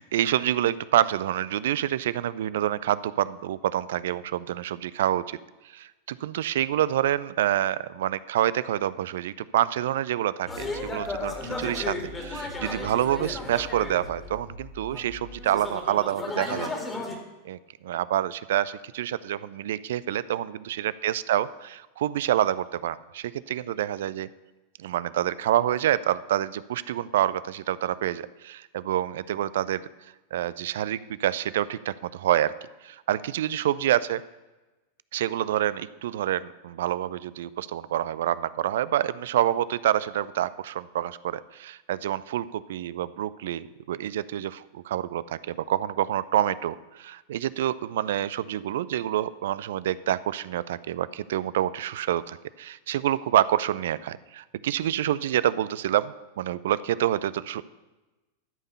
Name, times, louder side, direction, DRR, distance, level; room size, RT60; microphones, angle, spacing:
voice 1, 0.0-5.4 5.7-16.7 17.4-24.3 24.8-29.8 30.3-32.5 32.8-34.2 35.1-57.6, right 12 dB, 60° right, 17 dB, 0.4 m, -27 dB
sound 1, 10.4-15.9, left 2 dB, 60° left, 4.4 m, -44 dB
sound 2, 10.5-14.4 14.9-17.2, left 2 dB, 15° left, 2.0 m, -34 dB
12.5 x 5.4 x 6.8 m, 1.1 s
figure-of-eight pair, 90°, 0 cm